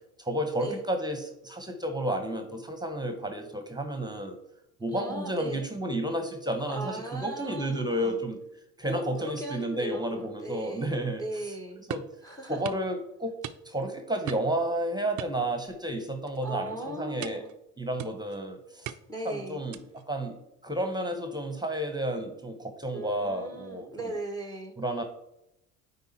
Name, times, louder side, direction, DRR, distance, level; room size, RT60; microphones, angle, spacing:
voice 1, 0.2-4.4 4.8-8.4 8.8-11.2 11.9-12.0 12.5-13.4 13.6-17.4 17.8-18.9 19.2-19.8 20.1-20.4 20.6-23.9 24.8-25.0, right 1 dB, 10° right, 6 dB, 1.2 m, -31 dB
voice 2, 4.9-5.7 6.7-8.2 8.8-10.9 11.2-11.8 12.2-12.6 16.4-17.5 19.1-19.6 22.9-24.7, right 1 dB, 10° left, 5 dB, 1.1 m, -38 dB
sound 1, 11.9-12.2 12.6-12.9 13.4-13.9 14.3-14.6 15.2-15.9 16.3-16.5 17.2-17.5 18.0-18.4 18.8-19.2 19.7-20.0, right 11 dB, 45° right, 0.6 m, -40 dB
9.5 x 4.1 x 4.3 m, 0.83 s
hypercardioid pair, 75°, 43 cm